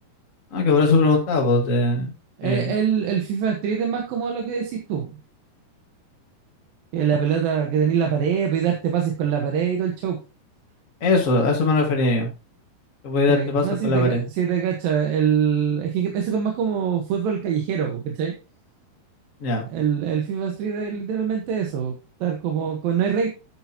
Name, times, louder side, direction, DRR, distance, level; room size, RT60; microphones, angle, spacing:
voice 1, 0.5-2.1 2.4-2.7 11.0-12.3 13.0-14.2 19.4-19.6, left 3 dB, 55° left, 1 dB, 0.8 m, -20 dB
voice 2, 2.4-5.1 6.9-10.2 13.3-18.3 19.7-23.3, right 7 dB, 70° right, 2 dB, 2.9 m, -24 dB
10.0 x 8.7 x 2.9 m, 0.30 s
omnidirectional pair, 4.5 m